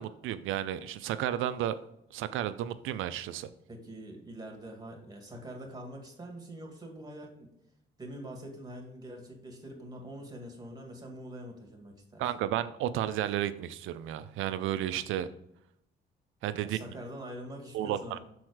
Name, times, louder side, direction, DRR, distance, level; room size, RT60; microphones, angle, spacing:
voice 1, 0.0-1.8 2.1-3.5 12.2-15.3 16.4-16.8 17.7-18.2, right 11 dB, 85° right, 13 dB, 0.5 m, -32 dB
voice 2, 3.7-7.5 8.0-12.2 16.6-18.2, right 1 dB, 20° right, 1 dB, 2.1 m, -44 dB
6.3 x 4.3 x 4.8 m, 0.78 s
cardioid pair, 90°, 20 cm